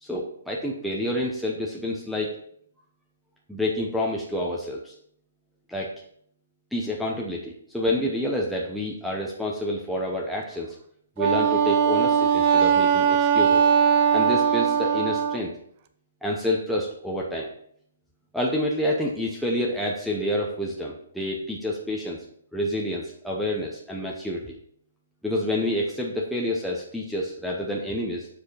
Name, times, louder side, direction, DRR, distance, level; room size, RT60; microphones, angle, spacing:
voice 1, 0.0-2.3 3.5-4.9 5.7-5.9 6.7-10.8 11.2-13.7 14.1-15.5 16.2-17.5 18.3-22.2 22.5-24.6 25.2-28.3, left 1 dB, ahead, -3 dB, 0.8 m, -28 dB
Wind instrument woodwind instrument, 11.2-15.4, right 7 dB, 40° right, 0.5 m, -20 dB
6.3 x 4.9 x 4.1 m, 0.65 s
hypercardioid pair, 140°, 0 cm